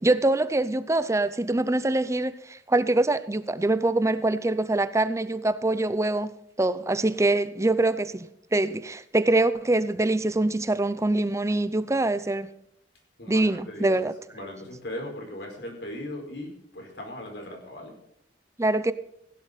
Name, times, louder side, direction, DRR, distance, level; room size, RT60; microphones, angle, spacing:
voice 1, 0.0-6.3 6.6-12.5 13.3-14.1 18.6-18.9, right 2 dB, 15° right, 0.6 m, -24 dB
voice 2, 13.2-13.9 14.3-17.9, left 1 dB, 65° left, 4.7 m, -38 dB
16.0 x 11.5 x 4.1 m
head